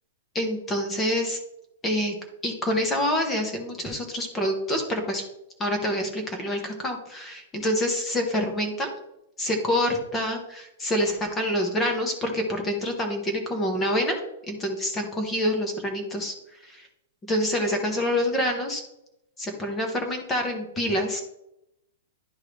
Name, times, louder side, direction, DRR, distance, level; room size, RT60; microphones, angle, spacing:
voice 1, 0.3-1.4 1.8-2.2 2.4-5.2 5.6-8.9 9.4-14.2 14.5-16.3 16.6-16.9 17.3-18.8 19.4-21.2, equal, 10° left, 3 dB, 1.0 m, -26 dB
11.0 x 3.7 x 3.3 m, 0.84 s
supercardioid pair, 180°, 0 cm